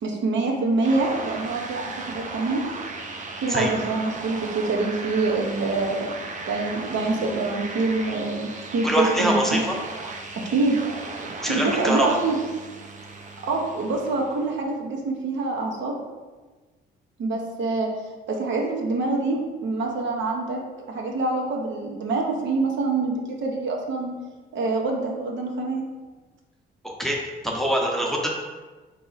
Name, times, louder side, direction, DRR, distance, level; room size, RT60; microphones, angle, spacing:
voice 1, 0.0-2.6 3.4-6.1 6.5-9.6 10.4-10.8 11.5-12.4 13.4-15.9 17.2-17.9 18.3-20.6 20.9-24.1 24.5-25.8, right 3 dB, 70° right, 0 dB, 0.8 m, -25 dB
sound 1, 0.8-14.5, right 3 dB, 40° right, 0.5 m, -36 dB
voice 2, 8.8-9.8 11.4-12.1 26.8-27.2 27.4-28.3, equal, ahead, -1 dB, 0.7 m, -24 dB
3.9 x 2.9 x 3.9 m, 1.3 s
cardioid pair, 90°, 20 cm